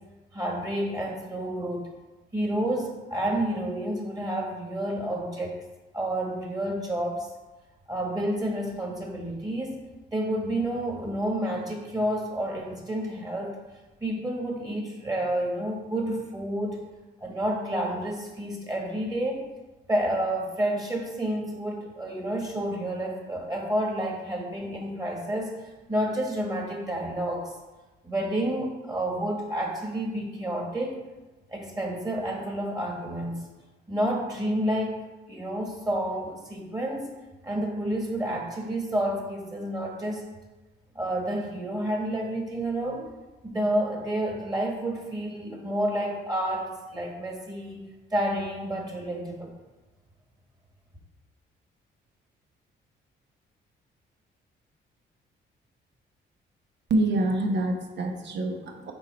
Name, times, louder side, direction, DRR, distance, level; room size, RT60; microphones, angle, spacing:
voice 1, 0.3-1.9 2.3-5.6 5.9-7.3 7.9-9.8 10.1-13.5 14.0-16.8 17.2-19.4 19.9-25.5 25.9-27.5 28.0-31.0 31.5-33.4 33.9-35.0 35.3-37.1 37.4-40.3 40.9-43.1 43.4-47.8 48.1-49.5, right 1 dB, 20° right, -1 dB, 1.7 m, -29 dB
voice 2, 56.9-58.9, right 2 dB, 65° right, 3 dB, 1.0 m, -26 dB
5.6 x 4.6 x 4.1 m, 1.1 s
cardioid pair, 90°, 20 cm